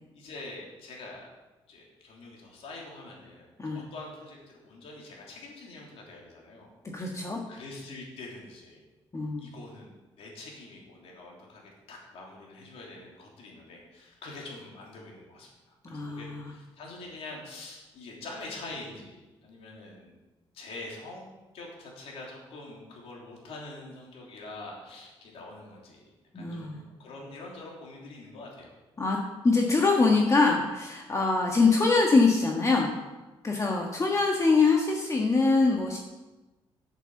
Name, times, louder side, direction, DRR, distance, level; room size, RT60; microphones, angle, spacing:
voice 1, 0.1-1.3 1.7-3.5 3.7-6.7 7.1-7.2 7.5-8.8 9.4-9.9 10.2-20.2 20.5-21.2 21.5-28.7 33.5-33.7, left 2 dB, 80° left, -2 dB, 3.3 m, -45 dB
voice 2, 6.9-7.4 9.1-9.5 15.8-16.5 26.3-26.8 29.0-29.2 29.4-32.9 33.4-36.0, left 3 dB, 30° left, 0 dB, 1.6 m, -24 dB
8.2 x 8.0 x 7.2 m, 1.1 s
cardioid pair, 80°, 10 cm